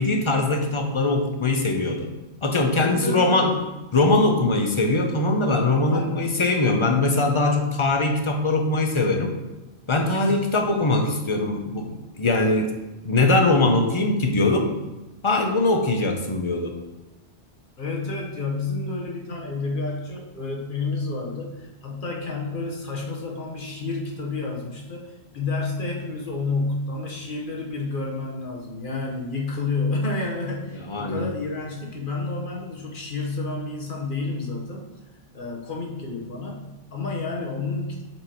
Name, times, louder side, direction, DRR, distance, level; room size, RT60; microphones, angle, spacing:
voice 1, 0.0-2.1 2.4-3.6 3.9-9.3 9.9-12.7 13.0-14.7 15.2-16.7 30.9-31.3, left 2 dB, 35° left, 3 dB, 0.6 m, -21 dB
voice 2, 2.8-3.5 5.9-6.3 10.1-10.9 17.8-34.9 35.3-38.0, left 3 dB, 50° left, -1 dB, 1.2 m, -30 dB
7.7 x 4.4 x 2.9 m, 1.0 s
omnidirectional pair, 1.1 m